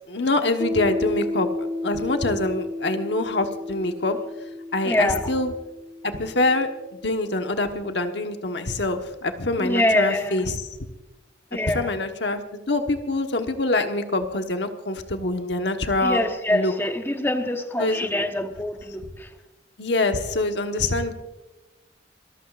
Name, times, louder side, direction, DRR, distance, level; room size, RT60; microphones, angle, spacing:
voice 1, 0.1-1.5 1.8-4.2 4.7-5.5 6.0-6.7 7.0-10.6 11.7-16.2 16.5-16.7 17.8-18.1 19.8-21.1, left 2 dB, 65° left, 6 dB, 1.2 m, -25 dB
Piano, 0.6-7.8, left 2 dB, 15° right, 1.0 m, -33 dB
voice 2, 4.8-5.3 9.6-10.5 11.5-11.9 16.0-19.3, left 1 dB, 10° left, 4 dB, 1.0 m, -25 dB
26.0 x 14.0 x 2.5 m, 1.1 s
head